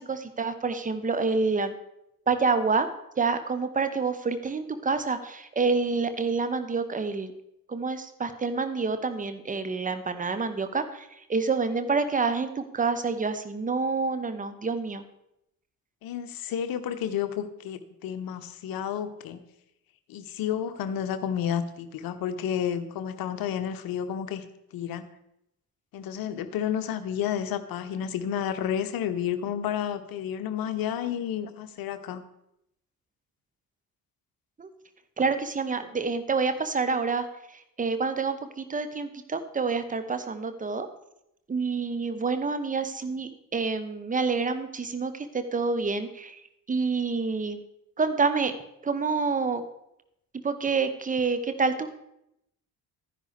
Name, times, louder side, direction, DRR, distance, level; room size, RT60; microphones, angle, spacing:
voice 1, 0.0-1.7 2.3-2.9 3.2-7.3 7.7-15.0 34.6-34.7 35.2-37.3 37.5-40.9 41.5-46.4 46.7-47.6 48.0-48.5 48.8-49.6 50.4-51.9, right 4 dB, 15° right, 10 dB, 0.9 m, -28 dB
voice 2, 16.0-19.4 20.1-24.4 24.7-25.0 25.9-32.2, left 9 dB, 50° left, 11 dB, 0.9 m, -31 dB
12.5 x 10.0 x 3.4 m, 0.82 s
figure-of-eight pair, 45°, 47 cm